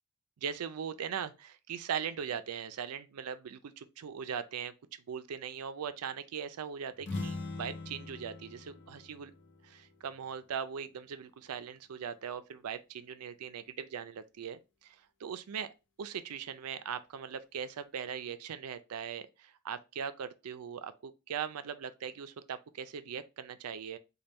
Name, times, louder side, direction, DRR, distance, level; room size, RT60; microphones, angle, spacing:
voice 1, 0.4-4.7 5.1-9.3 9.6-15.7 16.0-24.0, right 7 dB, 80° right, 0.4 m, -40 dB
sound 1, 7.0-10.7, left 3 dB, 55° left, 0.7 m, -42 dB
4.2 x 2.2 x 3.4 m
head